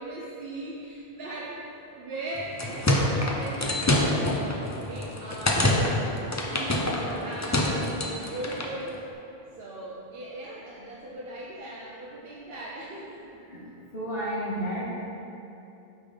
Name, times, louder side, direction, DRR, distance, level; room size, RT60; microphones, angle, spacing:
voice 1, 0.0-1.6 1.9-6.1 6.5-9.0 9.6-13.4, right 1 dB, 70° right, -5 dB, 1.0 m, -38 dB
sound 1, 2.4-8.8, left 1 dB, 20° left, 0.5 m, -26 dB
voice 2, 13.9-14.8, equal, 65° left, -9 dB, 1.9 m, -31 dB
8.5 x 4.1 x 5.0 m, 2.8 s
omnidirectional pair, 1.0 m